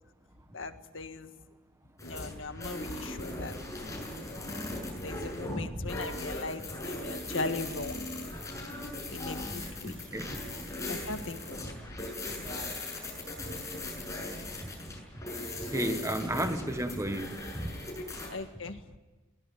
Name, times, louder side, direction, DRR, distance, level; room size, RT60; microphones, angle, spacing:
voice 1, 0.5-1.3 2.0-3.6 5.0-8.4 9.1-9.9 10.9-12.0 18.3-18.8, left 3 dB, 85° left, 1.7 m, -39 dB
sound 1, 2.0-18.3, left 1 dB, 15° left, 7.2 m, -38 dB
voice 2, 9.6-10.4 15.7-17.7, right 1 dB, 15° right, 1.4 m, -33 dB
23.0 x 18.0 x 9.2 m
head